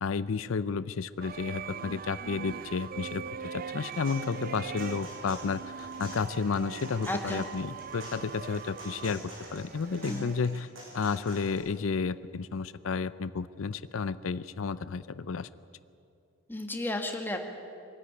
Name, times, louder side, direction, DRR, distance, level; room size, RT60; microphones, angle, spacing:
voice 1, 0.0-3.2 3.5-9.2 9.5-10.7 10.9-15.5, left 5 dB, 85° left, 15 dB, 0.5 m, -32 dB
sound 1, 1.2-10.6, right 6 dB, 45° right, 0.5 m, -41 dB
sound 2, 3.6-11.6, right 1 dB, 70° right, 6.9 m, -47 dB
voice 2, 7.1-7.4 10.0-10.3 16.5-17.4, left 1 dB, 10° left, 4 dB, 1.7 m, -33 dB
23.0 x 13.5 x 9.8 m, 2.6 s
head